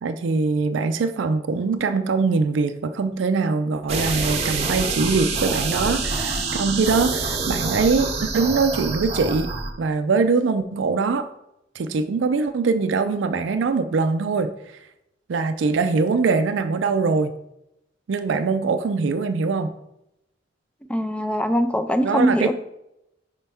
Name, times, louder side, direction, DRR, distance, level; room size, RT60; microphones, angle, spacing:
voice 1, 0.0-9.5 9.8-11.3 11.8-14.5 15.3-17.3 18.1-19.7 22.0-22.5, right 4 dB, 75° right, 9 dB, 0.4 m, -22 dB
sound 1, 3.9-9.7, right 3 dB, 35° right, 0.7 m, -26 dB
voice 2, 20.9-22.5, equal, 5° left, 8 dB, 0.4 m, -22 dB
5.4 x 5.1 x 3.5 m, 0.85 s
head